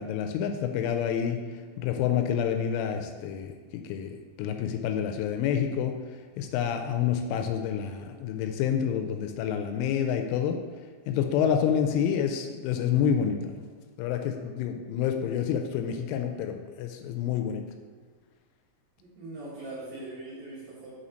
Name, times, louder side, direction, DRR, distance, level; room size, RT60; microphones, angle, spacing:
voice 1, 0.0-1.4 1.8-5.9 6.4-10.6 11.1-13.6 14.0-17.6, left 8 dB, 85° left, 5 dB, 3.0 m, -28 dB
voice 2, 19.0-20.9, right 2 dB, 65° right, -8 dB, 2.5 m, -41 dB
6.7 x 4.2 x 5.0 m, 1.5 s
omnidirectional pair, 5.6 m